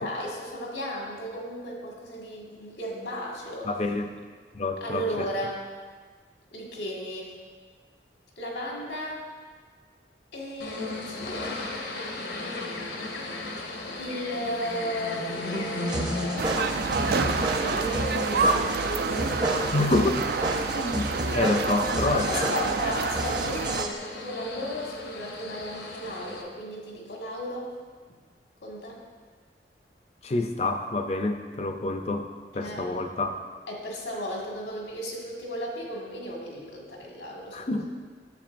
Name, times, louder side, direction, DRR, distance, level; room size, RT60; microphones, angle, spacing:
voice 1, 0.0-3.7 4.8-5.6 6.5-7.4 8.4-9.2 10.3-11.7 13.9-16.6 17.5-20.0 22.3-27.7 28.6-29.0 32.5-32.9 33.7-37.9, equal, 85° left, -2 dB, 1.8 m, -35 dB
voice 2, 3.6-4.1 4.5-5.3 19.7-20.2 20.7-22.6 30.2-32.3 32.5-33.3 37.5-37.9, left 2 dB, 35° left, 6 dB, 0.5 m, -27 dB
sound 1, 10.6-26.4, left 2 dB, 70° left, 0.9 m, -36 dB
sound 2, 15.9-23.9, right 1 dB, 25° right, 0.6 m, -32 dB
sound 3, 16.4-23.8, right 4 dB, 55° right, 0.3 m, -28 dB
10.5 x 7.6 x 2.6 m, 1.5 s
head